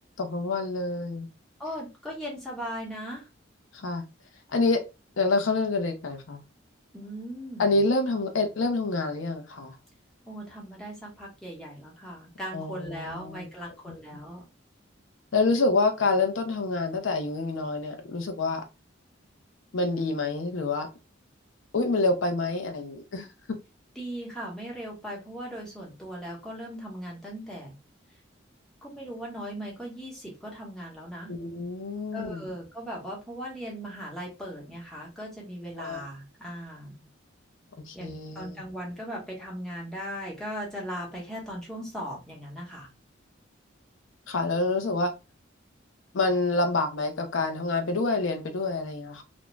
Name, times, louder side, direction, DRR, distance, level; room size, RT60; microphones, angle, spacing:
voice 1, 0.2-1.3 3.8-4.0 4.5-4.8 5.2-6.4 7.6-9.8 12.5-13.5 13.9-14.0 15.3-18.6 19.7-20.9 21.7-23.3 31.3-32.5 35.8-36.0 37.8-38.6 44.3-45.1 46.1-49.2, left 3 dB, 80° left, 0.5 m, -27 dB
voice 2, 1.6-3.3 6.9-7.6 10.3-14.4 24.0-27.7 28.8-31.3 32.1-37.1 37.9-42.9, equal, 5° left, 0.9 m, -38 dB
2.5 x 2.1 x 3.0 m
head